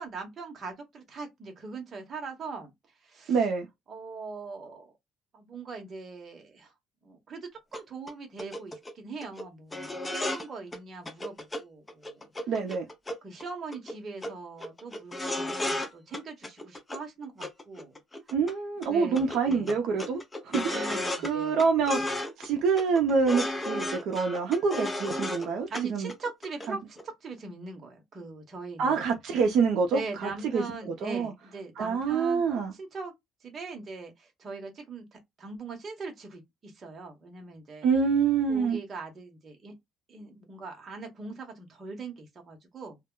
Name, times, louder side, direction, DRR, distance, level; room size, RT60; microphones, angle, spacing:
voice 1, 0.0-2.7 3.0-3.4 3.9-4.9 5.3-6.7 7.0-12.5 13.2-18.0 18.9-19.8 20.7-21.6 22.0-22.1 25.7-29.0 29.9-32.4 32.7-33.1 33.4-37.9 38.5-39.7 40.1-43.0, right 4 dB, 30° right, 0.8 m, -41 dB
voice 2, 3.3-3.7 12.5-12.9 18.3-22.0 22.4-26.1 26.7-26.8 28.8-30.6 31.0-31.3 31.8-32.7 37.8-38.8, right 5 dB, 60° right, 0.5 m, -26 dB
sound 1, 7.7-7.8 8.1-8.2 8.4-8.9 9.2-9.4 9.7-10.5 10.7-10.8 11.1-11.6 11.9-13.4 13.7-14.0 14.2-14.3 14.6-17.0 17.4-18.5 18.8-18.9 19.2-21.3 21.6-22.5 22.8-25.5 25.7-25.8 26.1-26.7 27.0-27.1, left 1 dB, 15° left, 0.4 m, -34 dB
2.2 x 2.0 x 3.6 m
cardioid pair, 160°, 0 cm